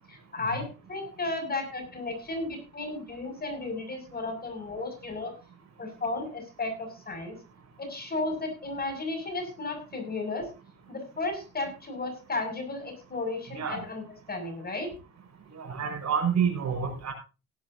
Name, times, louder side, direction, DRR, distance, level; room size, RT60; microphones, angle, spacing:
voice 1, 0.1-5.3 5.8-7.4 7.8-10.5 10.9-14.0 14.3-14.9, left 2 dB, 30° left, 5 dB, 6.3 m, -34 dB
voice 2, 13.5-13.8 15.6-17.1, right 6 dB, 60° right, 4 dB, 5.6 m, -28 dB
17.5 x 11.5 x 2.7 m, 0.31 s
cardioid pair, 90°, 30 cm